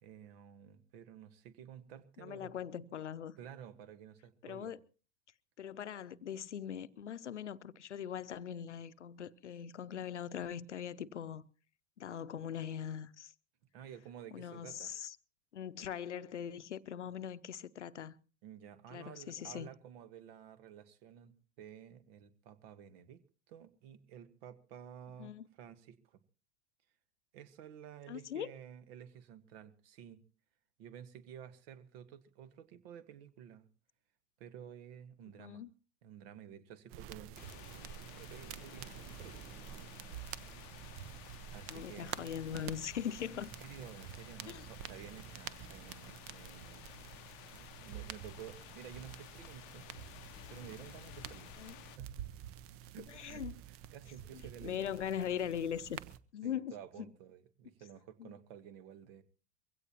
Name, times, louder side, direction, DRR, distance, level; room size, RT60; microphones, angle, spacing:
voice 1, 0.0-2.5 3.4-4.8 13.7-14.9 18.4-23.2 23.5-25.3 25.6-26.2 27.3-30.2 30.8-33.6 34.4-35.6 36.0-37.5 38.2-39.4 41.5-42.2 43.6-47.0 47.5-49.9 50.5-52.1 52.9-53.4 53.7-54.9 56.4-59.2, right 9 dB, 60° right, 1.5 m, -52 dB
voice 2, 2.2-3.4 4.4-4.8 5.6-11.5 12.0-13.3 14.3-15.2 15.5-18.1 18.9-19.7 25.2-25.5 28.1-28.5 35.4-35.7 41.7-43.5 44.5-44.7 51.6-51.7 53.1-53.5 54.3-56.0 56.3-57.1 58.2-58.3, left 9 dB, 85° left, 0.7 m, -41 dB
sound 1, 36.9-56.2, right 11 dB, 40° right, 0.9 m, -49 dB
sound 2, 37.3-52.0, left 19 dB, 45° left, 0.6 m, -54 dB
23.0 x 16.5 x 2.9 m
figure-of-eight pair, 85°, 35 cm